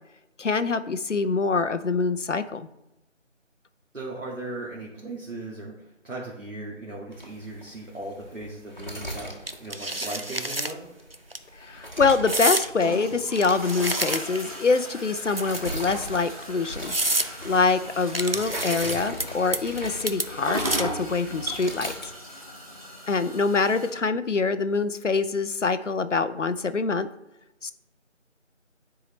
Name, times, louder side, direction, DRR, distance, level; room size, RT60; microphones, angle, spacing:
voice 1, 0.4-2.7 11.5-21.9 23.1-27.1 27.6-27.7, left 4 dB, 70° left, 12 dB, 0.7 m, -25 dB
voice 2, 3.9-9.3 9.6-10.8, right 2 dB, 80° right, -5 dB, 2.1 m, -37 dB
sound 1, 7.1-22.1, equal, 35° left, 1.1 m, -40 dB
sound 2, 9.5-10.7 11.1-11.4 12.3-12.7 13.3-14.5 15.3-15.9 16.4-16.5 16.9-17.3 18.1-19.2 19.5-19.8 20.1-21.0, right 2 dB, 50° right, 0.4 m, -28 dB
sound 3, 12.2-23.9, equal, 30° right, 1.5 m, -38 dB
10.0 x 4.7 x 3.1 m, 0.93 s
figure-of-eight pair, 175°, 37 cm